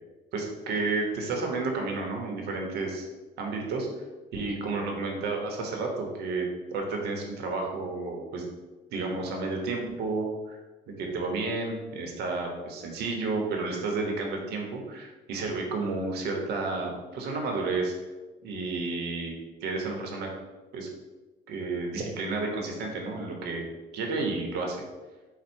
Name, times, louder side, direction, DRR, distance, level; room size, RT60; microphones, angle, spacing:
voice 1, 0.3-3.1 3.4-3.9 4.3-6.5 6.7-8.5 8.9-10.6 10.9-17.9 18.4-19.3 19.6-20.3 20.7-20.9 21.5-23.6 23.9-24.8, right 3 dB, 75° right, 1 dB, 1.0 m, -31 dB
4.4 x 2.2 x 4.4 m, 1.2 s
cardioid pair, 110°, 17 cm